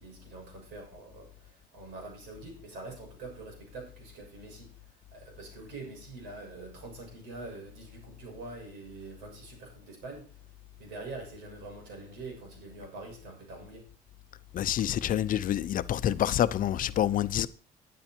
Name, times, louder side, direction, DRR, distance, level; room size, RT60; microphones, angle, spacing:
voice 1, 0.0-10.3 10.8-13.9, right 3 dB, 90° right, 6.6 m, -45 dB
voice 2, 14.5-17.5, left 11 dB, 55° left, 0.7 m, -27 dB
11.5 x 10.0 x 4.5 m
cardioid pair, 110°, 17 cm